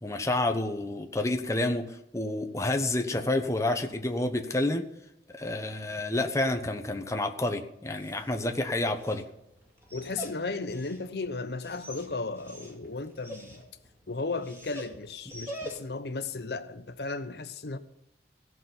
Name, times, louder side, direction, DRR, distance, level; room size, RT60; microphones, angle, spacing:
voice 1, 0.0-4.9 5.3-9.2, left 2 dB, 15° left, 1.0 m, -29 dB
Dog, 7.8-16.1, equal, 15° right, 2.6 m, -46 dB
voice 2, 9.9-13.6 14.1-17.8, left 3 dB, 65° left, 0.8 m, -35 dB
16.0 x 6.2 x 9.6 m
head